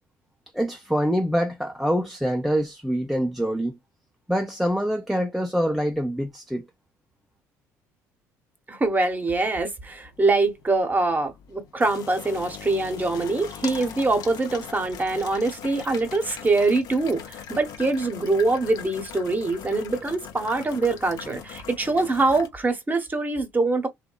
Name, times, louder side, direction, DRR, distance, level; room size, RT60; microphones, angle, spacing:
voice 1, 0.5-3.7 4.3-6.6, equal, ahead, 0.5 m, -25 dB
voice 2, 8.7-23.9, right 3 dB, 25° right, 0.9 m, -24 dB
sound 1, 9.8-22.5, left 8 dB, 65° left, 0.5 m, -41 dB
2.7 x 2.1 x 2.2 m
supercardioid pair, 65°, 7 cm